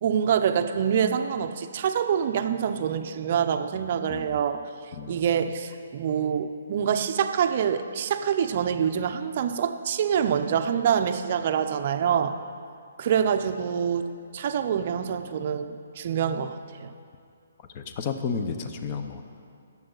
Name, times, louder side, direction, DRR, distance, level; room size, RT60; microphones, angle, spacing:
voice 1, 0.0-4.6 5.1-12.4 13.0-16.9, right 8 dB, 40° right, 8 dB, 0.5 m, -26 dB
voice 2, 17.7-19.2, left 5 dB, 30° left, 7 dB, 0.7 m, -32 dB
18.0 x 7.3 x 3.9 m, 2.3 s
hypercardioid pair, 165°, 0 cm